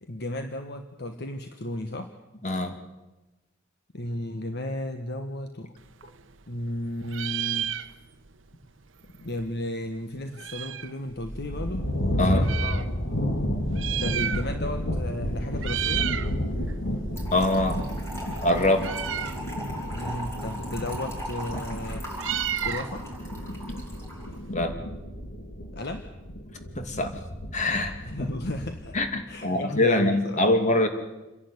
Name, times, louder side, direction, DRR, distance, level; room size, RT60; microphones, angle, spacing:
voice 1, 0.0-2.1 3.9-5.7 6.5-7.7 9.2-11.9 12.3-13.3 14.0-16.1 19.9-22.1 22.6-23.1 25.7-26.0 28.0-29.0 29.3-30.4, left 1 dB, 55° left, 6 dB, 1.2 m, -34 dB
voice 2, 2.4-2.8 12.2-12.5 17.3-17.8 18.4-18.9 24.5-24.8 26.8-27.2 27.5-27.9 28.9-30.9, left 1 dB, 40° left, 6 dB, 2.3 m, -24 dB
Meow, 5.8-6.8 7.0-8.3 8.6-8.7 8.9-11.0 11.6-12.8 13.6-14.8 15.1-15.3 15.6-16.3 16.7-24.5, right 10 dB, 75° right, 0.8 m, -33 dB
sound 1, 11.1-29.2, equal, 75° left, 2.7 m, -31 dB
Trickle dribble / Fill (with liquid), 17.2-24.2, right 1 dB, 15° left, 6.2 m, -39 dB
27.5 x 11.0 x 9.6 m, 1.1 s
head